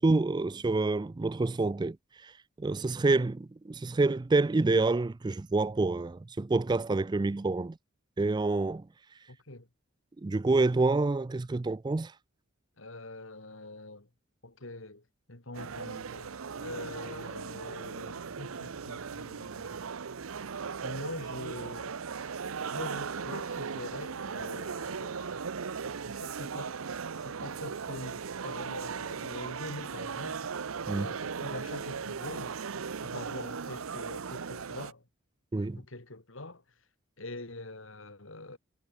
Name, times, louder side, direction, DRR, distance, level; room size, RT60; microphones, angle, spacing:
voice 1, 0.0-2.0 2.2-2.3 2.6-7.7 8.2-8.8 10.2-12.1 30.9-31.1 35.5-35.8, right 3 dB, 20° right, 0.3 m, -27 dB
voice 2, 9.3-9.7 12.8-14.1 14.4-19.8 20.8-22.0 22.7-25.5 26.0-26.8 27.2-30.5 30.9-32.6 33.0-35.1 35.7-36.6 37.2-38.6, left 2 dB, 70° left, 3.1 m, -44 dB
sound 1, 15.5-34.9, right 6 dB, 85° right, 0.7 m, -38 dB
head